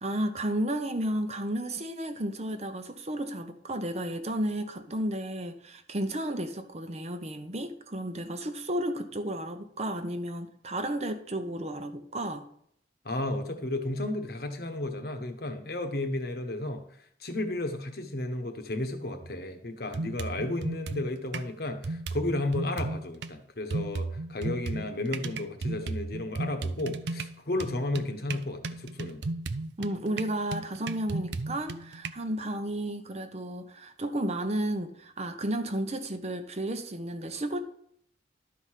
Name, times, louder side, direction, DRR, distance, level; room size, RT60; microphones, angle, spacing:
voice 1, 0.0-12.5 29.8-37.6, right 1 dB, 35° right, 0.8 m, -33 dB
voice 2, 13.0-16.8 17.2-29.2, left 2 dB, 55° left, 1.1 m, -33 dB
sound 1, 19.2-19.3 19.9-21.5 21.8-23.3 23.7-32.1, right 3 dB, 70° right, 0.5 m, -35 dB
12.0 x 4.8 x 5.7 m
head